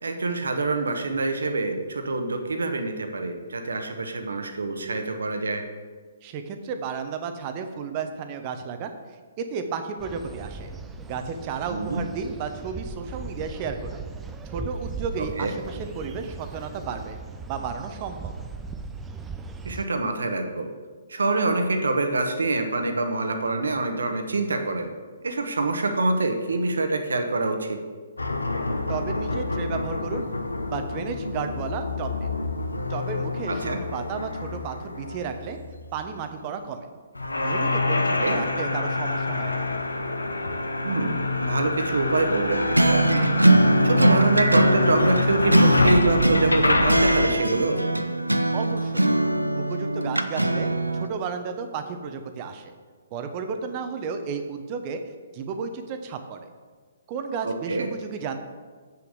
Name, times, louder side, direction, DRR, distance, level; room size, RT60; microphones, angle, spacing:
voice 1, 0.0-5.6 11.7-12.0 15.4-15.5 19.6-20.7 21.1-24.9 25.2-27.8 33.5-33.8 38.2-38.4 40.8-47.8 57.4-57.9, right 3 dB, 65° right, 6 dB, 1.2 m, -26 dB
voice 2, 6.2-8.9 9.4-10.7 11.1-14.0 14.4-17.2 17.5-18.3 28.9-30.2 30.7-32.4 32.9-35.6 35.9-36.9 37.4-39.7 48.5-49.1 49.6-52.7 53.1-55.0 55.3-56.5 57.1-58.4, right 5 dB, 30° right, 7 dB, 0.9 m, -33 dB
sound 1, 10.0-19.8, right 4 dB, 10° right, 0.5 m, -38 dB
sound 2, 28.2-36.1 37.1-47.3, left 2 dB, 80° left, 0.9 m, -27 dB
sound 3, 42.5-51.1, right 1 dB, 85° right, 0.6 m, -22 dB
7.6 x 6.8 x 6.6 m, 1.5 s
figure-of-eight pair, 125°, 0 cm